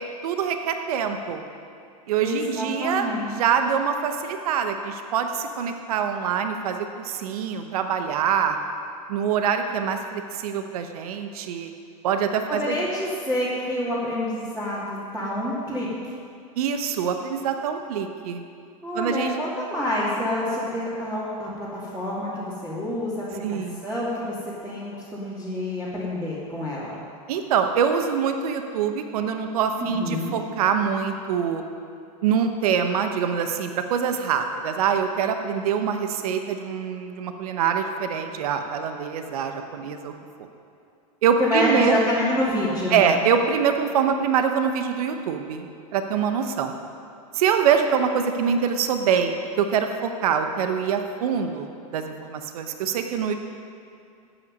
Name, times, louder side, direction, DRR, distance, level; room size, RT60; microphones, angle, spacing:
voice 1, 0.0-1.4 2.1-3.1 3.4-8.6 9.1-11.7 12.0-12.8 16.6-18.4 18.9-19.4 23.4-23.8 27.3-31.6 32.2-40.1 41.2-42.0 42.9-45.7 45.9-46.7 47.3-53.3, right 7 dB, 75° right, 7 dB, 0.9 m, -24 dB
voice 2, 2.2-3.3 12.5-15.9 18.8-24.3 24.6-26.9 29.8-30.3 41.4-43.1, left 1 dB, 10° right, -9 dB, 2.5 m, -27 dB
13.0 x 9.0 x 5.3 m, 2.5 s
hypercardioid pair, 110°, 19 cm